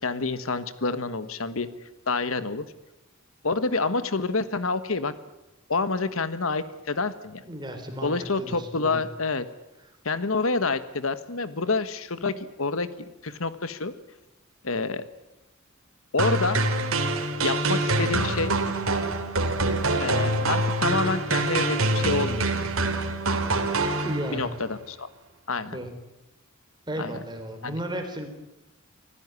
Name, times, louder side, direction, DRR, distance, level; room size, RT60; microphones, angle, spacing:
voice 1, 0.0-1.7 2.1-2.6 3.4-5.1 5.7-7.4 8.0-9.4 10.0-13.9 14.6-15.0 16.1-16.6 17.4-18.5 20.0-22.5 24.3-25.1 25.5-25.8 27.0-27.1 27.6-27.7, left 3 dB, 75° left, 13 dB, 1.4 m, -28 dB
voice 2, 7.4-9.0 24.0-24.4 25.7-25.9 26.9-28.3, equal, 20° right, 5 dB, 4.2 m, -34 dB
sound 1, 16.2-24.6, right 2 dB, 80° right, 3.0 m, -25 dB
25.5 x 16.0 x 9.7 m, 0.93 s
head